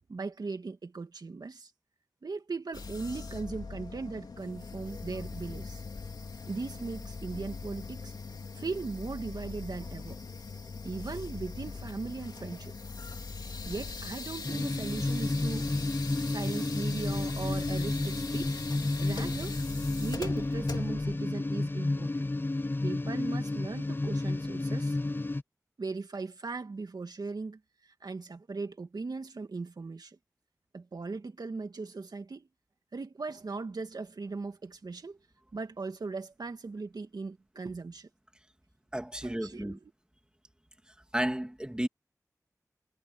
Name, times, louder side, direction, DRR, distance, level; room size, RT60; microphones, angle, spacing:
voice 1, 0.1-1.7 2.2-5.8 6.5-8.1 8.5-10.2 10.8-12.7 13.7-15.7 16.2-18.6 19.0-19.6 20.0-22.3 22.8-25.0 25.8-30.2 30.7-32.5 32.9-35.2 35.5-38.1 39.2-39.8, right 4 dB, 75° right, 2.2 m, -38 dB
sound 1, 2.7-21.2, left 4 dB, 85° left, 2.8 m, -41 dB
sound 2, 14.4-25.4, left 2 dB, 30° left, 0.7 m, -31 dB
voice 2, 38.9-39.8 41.1-41.9, right 1 dB, 10° right, 2.6 m, -32 dB
wide cardioid pair, 50°, 7 cm